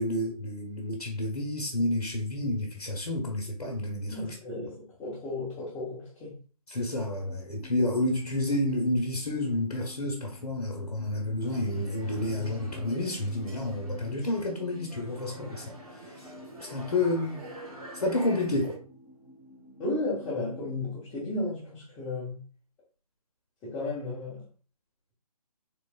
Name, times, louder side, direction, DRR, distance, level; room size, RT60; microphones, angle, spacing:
voice 1, 0.0-4.4 6.7-16.3 16.6-17.4 17.9-18.8, left 1 dB, 75° left, 1.0 m, -30 dB
voice 2, 4.1-6.4 19.8-22.4 23.6-24.4, left 2 dB, 15° left, 1.1 m, -34 dB
sound 1, 7.2-20.9, left 1 dB, 5° right, 1.6 m, -51 dB
sound 2, 11.4-18.8, right 1 dB, 70° right, 1.6 m, -47 dB
3.8 x 3.1 x 2.3 m
figure-of-eight pair, 145°, 19 cm